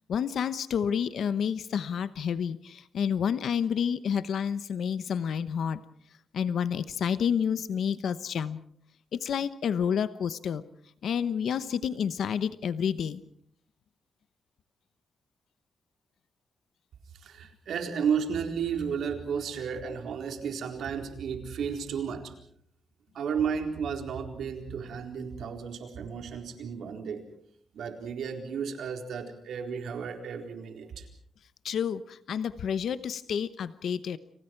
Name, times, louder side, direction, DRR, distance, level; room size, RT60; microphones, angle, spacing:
voice 1, 0.1-5.8 6.3-8.6 9.1-10.6 11.0-13.2 31.6-34.2, left 7 dB, 65° left, 13 dB, 0.9 m, -29 dB
voice 2, 17.2-22.3 23.1-27.2 27.7-31.1, right 7 dB, 75° right, 4 dB, 4.2 m, -33 dB
30.0 x 28.5 x 4.6 m, 0.63 s
wide cardioid pair, 175°, 0 cm